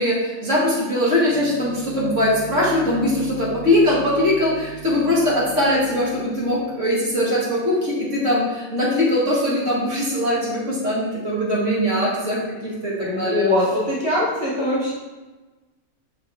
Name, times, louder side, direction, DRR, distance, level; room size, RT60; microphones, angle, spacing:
voice 1, 0.0-13.5, left 1 dB, 55° right, -6 dB, 2.1 m, -21 dB
sound 1, 1.3-6.6, right 5 dB, 40° left, 1.0 m, -39 dB
voice 2, 13.0-14.9, left 1 dB, 20° left, -7 dB, 1.6 m, -22 dB
7.6 x 6.2 x 3.4 m, 1.2 s
omnidirectional pair, 1.6 m